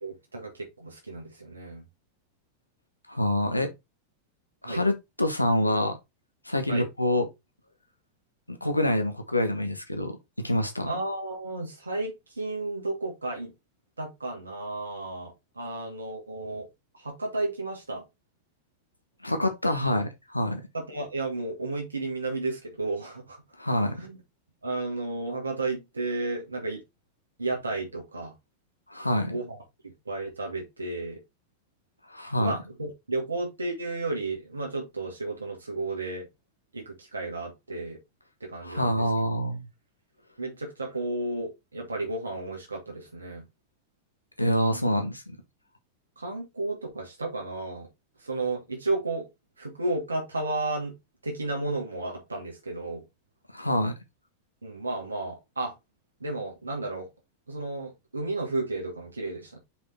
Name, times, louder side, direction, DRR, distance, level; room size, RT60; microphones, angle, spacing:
voice 1, 0.0-1.8 3.5-3.7 4.6-4.8 6.7-6.9 10.8-13.5 14.0-16.7 16.9-18.0 20.7-23.4 23.9-24.2 24.6-26.8 27.4-28.3 29.3-31.2 32.4-36.3 36.7-38.0 38.4-39.1 40.4-43.4 44.7-44.8 46.2-47.9 48.2-49.3 49.6-50.9 51.2-53.0 54.6-55.7 56.2-57.1 57.5-59.6, right 2 dB, 75° right, 2.0 m, -33 dB
voice 2, 3.1-3.7 4.6-6.0 6.4-7.3 8.5-10.2 10.4-11.0 19.2-20.6 23.6-23.9 28.9-29.3 32.1-32.5 38.6-39.6 44.4-45.2 53.5-53.9, left 1 dB, 85° left, 1.4 m, -26 dB
5.8 x 5.1 x 4.2 m
figure-of-eight pair, 90°, 0 cm